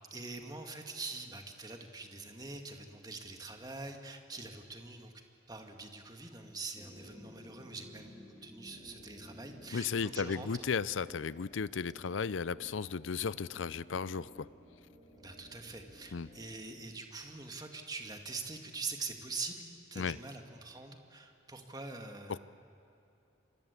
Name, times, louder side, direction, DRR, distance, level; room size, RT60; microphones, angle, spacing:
voice 1, 0.1-5.1 5.5-8.1 8.4-10.5 15.2-19.6 19.9-22.4, right 3 dB, 20° right, 4 dB, 2.0 m, -44 dB
sound 1, 6.8-11.4, left 1 dB, ahead, 3.3 m, -55 dB
sound 2, 8.7-16.5, equal, 40° left, 6.9 m, -57 dB
voice 2, 9.7-14.5 16.1-16.3 20.0-20.2 22.3-22.4, left 5 dB, 85° left, 19 dB, 0.5 m, -35 dB
28.5 x 23.0 x 8.3 m, 2.8 s
head